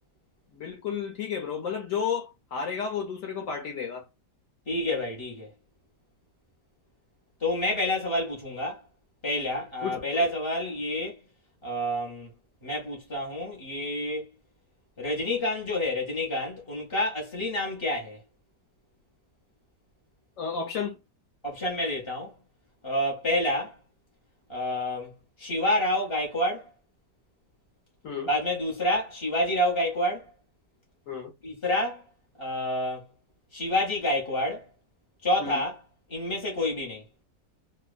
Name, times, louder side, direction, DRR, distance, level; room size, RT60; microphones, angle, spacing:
voice 1, 0.5-4.0 9.8-10.0 20.4-21.0 28.0-28.3 31.1-31.3 35.4-35.6, left 6 dB, 60° left, 1.0 m, -32 dB
voice 2, 4.7-5.5 7.4-8.8 9.2-11.2 11.6-12.3 12.6-14.3 15.0-18.2 21.4-22.3 22.8-23.8 24.5-26.7 28.3-30.3 31.4-32.0 32.4-33.1 33.5-34.7 35.2-35.8 36.1-37.0, left 1 dB, 30° left, 0.5 m, -28 dB
2.9 x 2.1 x 2.3 m
omnidirectional pair, 1.8 m